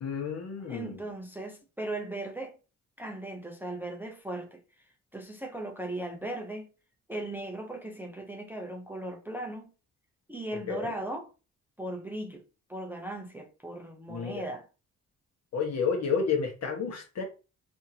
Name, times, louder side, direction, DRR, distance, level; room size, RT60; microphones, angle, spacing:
voice 1, 0.0-1.0 10.7-10.9 14.1-14.3 15.5-17.2, left 5 dB, 55° left, 1.1 m, -30 dB
voice 2, 0.6-2.6 3.0-4.6 5.1-6.7 7.1-9.7 10.3-11.3 11.8-12.4 12.7-14.6, right 1 dB, 5° right, 0.5 m, -37 dB
2.8 x 2.6 x 2.7 m
cardioid pair, 90°, 30 cm